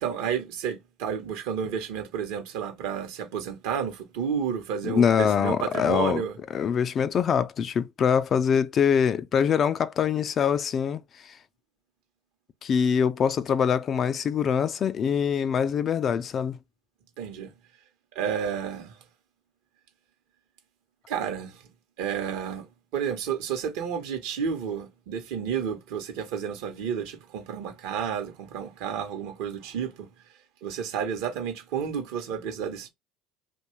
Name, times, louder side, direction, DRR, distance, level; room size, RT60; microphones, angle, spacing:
voice 1, 0.0-6.4 17.2-17.5 18.1-19.0 21.1-21.6 22.0-22.7 22.9-30.1 30.6-32.9, right 7 dB, 75° right, 0.8 m, -31 dB
voice 2, 4.8-6.2 6.5-11.0 12.6-16.6, left 7 dB, 45° left, 0.4 m, -24 dB
2.6 x 2.2 x 3.0 m
hypercardioid pair, 75°, 0 cm